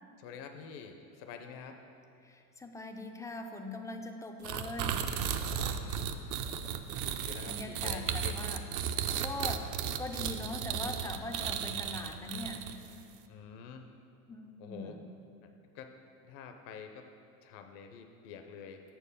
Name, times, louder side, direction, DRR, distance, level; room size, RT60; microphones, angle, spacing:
voice 1, 0.2-1.8 5.5-6.1 7.2-8.5 13.3-13.9 14.6-14.9 15.4-15.9 16.2-17.1 17.4-18.8, left 6 dB, 55° left, 5 dB, 0.7 m, -47 dB
voice 2, 2.2-5.1 7.4-8.6 9.2-9.6 10.0-12.7 14.3-15.0, left 2 dB, 10° left, 4 dB, 0.3 m, -41 dB
sound 1, 4.4-12.9, right 8 dB, 45° right, 0.5 m, -35 dB
6.7 x 4.6 x 6.7 m, 2.6 s
hypercardioid pair, 100°, 44 cm